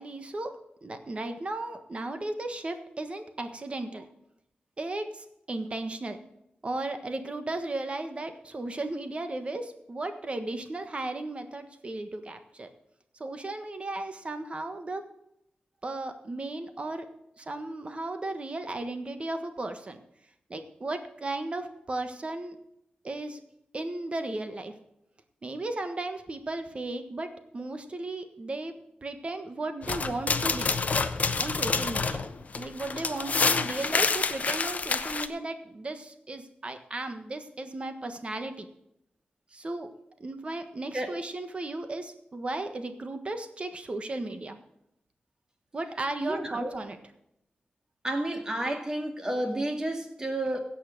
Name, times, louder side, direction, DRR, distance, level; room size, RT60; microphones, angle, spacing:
voice 1, 0.0-4.1 4.8-6.2 6.6-12.7 13.2-15.1 15.8-17.1 17.4-20.0 20.5-22.6 23.0-23.4 23.7-24.8 25.4-28.7 29.0-30.7 31.4-32.3 32.5-38.7 39.5-39.9 40.2-44.6 45.7-47.0, right 2 dB, 35° right, 8 dB, 1.4 m, -35 dB
sound 1, 29.8-35.3, left 4 dB, 50° left, 0.8 m, -28 dB
voice 2, 46.2-46.7 48.0-50.6, right 1 dB, 20° right, 4 dB, 2.1 m, -31 dB
16.0 x 5.7 x 6.6 m, 0.79 s
wide cardioid pair, 100°, 3 cm